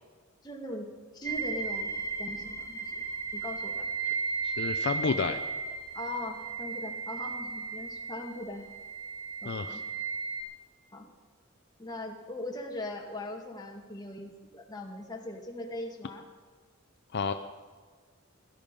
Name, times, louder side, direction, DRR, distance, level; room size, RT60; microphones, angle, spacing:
voice 1, 0.4-3.0 3.3-3.9 5.9-8.7 9.4-9.8 10.9-11.1 11.8-16.2, left 1 dB, 20° left, 0 dB, 2.0 m, -40 dB
sound 1, 1.2-10.4, right 4 dB, 35° right, 2.0 m, -35 dB
voice 2, 4.4-5.4 9.4-9.8 17.1-17.3, left 4 dB, 55° left, 8 dB, 0.6 m, -30 dB
17.0 x 13.0 x 5.4 m, 1.5 s
head